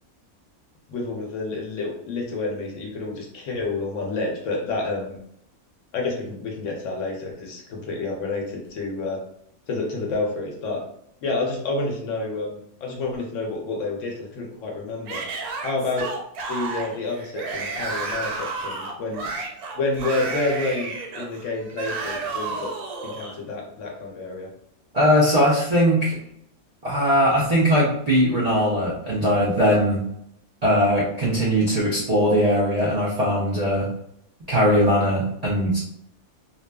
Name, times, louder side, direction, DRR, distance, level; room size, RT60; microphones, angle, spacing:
voice 1, 0.9-5.2 5.9-9.2 9.7-10.8 11.2-15.3 15.6-16.1 16.5-19.3 19.8-22.7 23.0-24.5, left 3 dB, 65° left, -1 dB, 0.8 m, -29 dB
Yell / Screaming, 15.1-23.4, right 3 dB, 90° right, 1.1 m, -31 dB
voice 2, 24.9-26.2 26.8-30.0 30.6-33.9 34.5-35.8, equal, 65° right, -7 dB, 0.4 m, -20 dB
2.6 x 2.3 x 2.2 m, 0.73 s
omnidirectional pair, 1.6 m